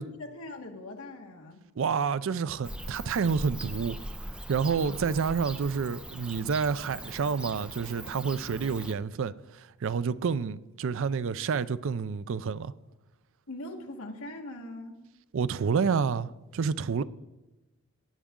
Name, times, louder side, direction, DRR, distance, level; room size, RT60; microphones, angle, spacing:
voice 1, 0.2-1.6 4.8-5.2 13.5-15.0, left 2 dB, 70° left, 1.6 m, -41 dB
voice 2, 1.8-4.0 4.5-12.7 15.3-17.0, right 5 dB, 60° right, 0.4 m, -29 dB
Bird / Cricket, 2.6-8.9, right 1 dB, 5° right, 0.4 m, -41 dB
17.0 x 9.6 x 3.7 m
head